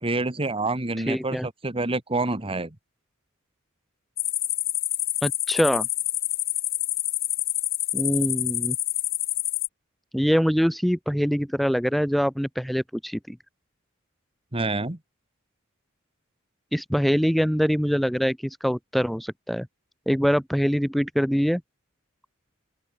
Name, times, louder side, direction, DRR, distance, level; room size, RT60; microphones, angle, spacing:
voice 1, 0.0-2.7 14.5-15.0, right 2 dB, 25° right, 1.7 m, -27 dB
voice 2, 1.1-1.5 5.2-5.9 7.9-8.8 10.1-13.4 16.7-19.7 20.1-21.6, equal, ahead, 1.3 m, -24 dB
sound 1, 4.2-9.7, left 14 dB, 45° left, 1.5 m, -27 dB
open air
head